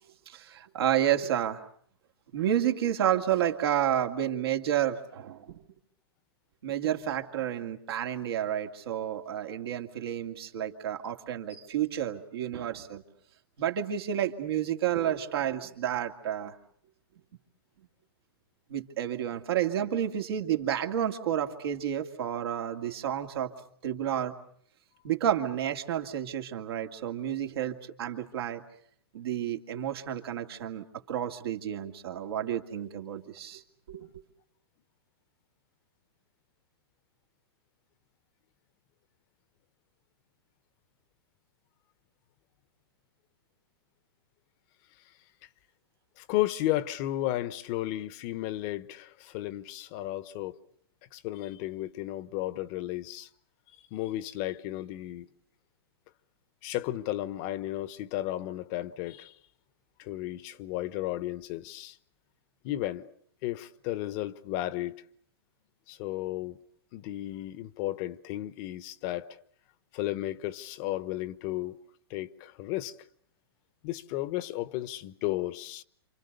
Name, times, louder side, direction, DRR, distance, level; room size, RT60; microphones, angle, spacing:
voice 1, 0.3-1.6 2.3-5.6 6.6-13.0 13.6-16.5 18.7-23.5 23.8-24.4 25.0-28.6 29.1-33.6 33.9-34.1, right 10 dB, 70° right, 2.4 m, -30 dB
voice 2, 46.2-50.6 51.1-53.3 53.9-55.3 56.6-59.3 60.0-62.0 62.6-63.1 63.4-65.0 65.9-66.6 66.9-69.3 69.9-71.8 72.1-72.9 73.8-75.8, left 15 dB, 45° left, 1.0 m, -33 dB
28.5 x 26.5 x 6.7 m
hypercardioid pair, 125°, 13 cm